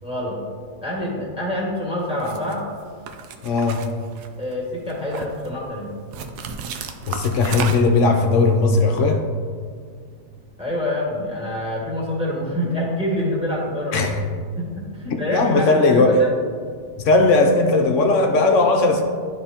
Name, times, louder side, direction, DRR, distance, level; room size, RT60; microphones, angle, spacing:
voice 1, 0.0-0.4 0.8-2.6 4.4-5.9 10.6-14.1 14.6-16.3, left 1 dB, 5° right, -4 dB, 1.7 m, -26 dB
sound 1, 2.2-2.5 3.1-4.5 4.9-5.5 6.1-8.1, right 6 dB, 85° right, 1.2 m, -32 dB
voice 2, 3.4-3.8 7.1-9.2 13.9-14.2 15.1-16.2 17.0-19.0, left 3 dB, 65° left, 4 dB, 0.8 m, -18 dB
11.5 x 4.1 x 2.9 m, 2.1 s
omnidirectional pair, 1.7 m